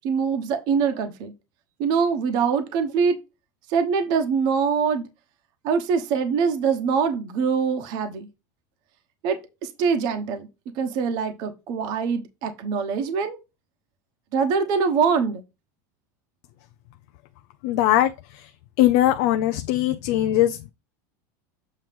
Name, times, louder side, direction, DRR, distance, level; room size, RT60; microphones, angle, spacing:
voice 1, 0.0-1.3 1.8-3.2 3.7-5.1 5.6-8.3 9.2-10.5 10.8-13.4 14.3-15.4, right 6 dB, 45° right, 1.1 m, -23 dB
voice 2, 17.6-18.5 18.8-20.7, left 13 dB, 55° left, 0.5 m, -21 dB
7.5 x 3.1 x 5.2 m
supercardioid pair, 165°, 10 cm